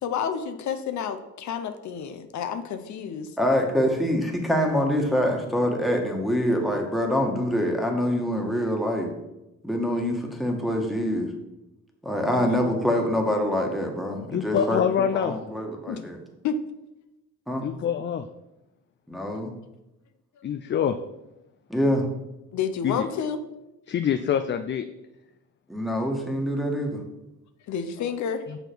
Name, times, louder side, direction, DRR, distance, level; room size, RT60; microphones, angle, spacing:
voice 1, 0.0-3.3 12.3-12.7 15.9-16.0 16.4-16.6 22.5-23.4 27.7-28.4, left 7 dB, 70° left, 9 dB, 0.7 m, -30 dB
voice 2, 3.4-9.1 9.6-11.3 12.0-14.8 15.1-16.2 17.5-17.6 19.1-19.5 21.7-22.0 25.7-27.0, equal, ahead, 1 dB, 1.4 m, -25 dB
voice 3, 14.3-15.4 17.6-18.3 20.4-21.0 22.8-23.1 23.9-24.9 28.5-28.6, left 8 dB, 40° left, 9 dB, 0.4 m, -25 dB
6.0 x 5.2 x 4.6 m, 0.94 s
cardioid pair, 90°, 30 cm